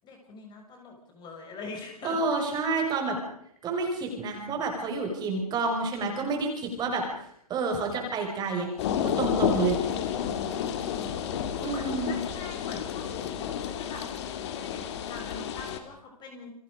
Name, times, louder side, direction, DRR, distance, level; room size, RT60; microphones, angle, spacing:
voice 1, 0.0-2.2 10.6-14.1 14.5-16.5, left 3 dB, 20° left, 2 dB, 6.5 m, -44 dB
voice 2, 2.0-3.2 3.6-8.7 9.0-9.8 11.6-12.2, right 3 dB, 20° right, 3 dB, 6.0 m, -29 dB
sound 1, 8.8-15.8, left 8 dB, 45° left, 3.2 m, -31 dB
29.5 x 23.5 x 5.3 m, 0.70 s
hypercardioid pair, 130°, 20 cm